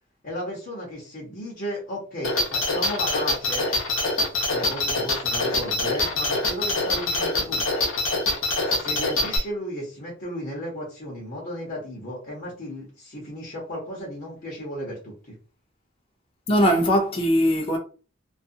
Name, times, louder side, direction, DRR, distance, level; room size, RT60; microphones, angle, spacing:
voice 1, 0.2-3.7 4.5-7.6 8.6-15.3, equal, 45° left, 0.9 m, -34 dB
sound 1, 2.2-9.4, left 2 dB, 85° left, 0.8 m, -24 dB
voice 2, 16.5-17.8, equal, 30° left, 0.4 m, -20 dB
2.4 x 2.3 x 2.6 m
head